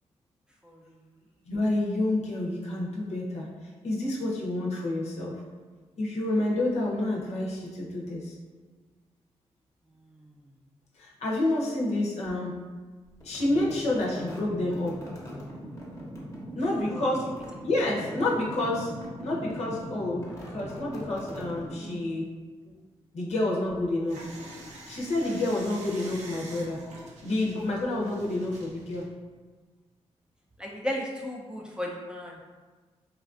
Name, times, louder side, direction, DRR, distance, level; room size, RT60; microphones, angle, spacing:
voice 1, 1.5-5.4 6.0-8.3 11.0-12.6 13.2-15.0 16.5-17.2 17.6-18.9 19.2-22.3 23.1-24.2 24.9-26.8 27.2-29.1, left 1 dB, 70° left, -4 dB, 0.7 m, -29 dB
sound 1, 13.2-22.2, equal, 25° left, 0.8 m, -41 dB
sound 2, 24.1-29.1, right 1 dB, 90° right, 0.5 m, -46 dB
voice 2, 30.6-32.4, left 1 dB, 5° right, -2 dB, 0.5 m, -34 dB
3.2 x 2.4 x 2.4 m, 1.4 s
cardioid pair, 65°, 12 cm